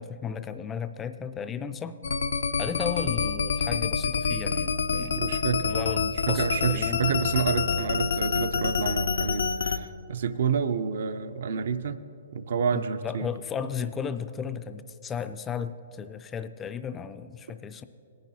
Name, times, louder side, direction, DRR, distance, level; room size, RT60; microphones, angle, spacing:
voice 1, 0.0-2.0 2.6-7.0 12.7-17.8, left 7 dB, 15° left, 11 dB, 0.3 m, -35 dB
sound 1, 2.0-9.8, left 5 dB, 75° left, 0.4 m, -27 dB
voice 2, 5.2-5.7 6.3-12.0 12.3-13.3, right 6 dB, 65° right, 10 dB, 0.5 m, -29 dB
18.0 x 10.5 x 2.8 m, 2.7 s
hypercardioid pair, 135°, 0 cm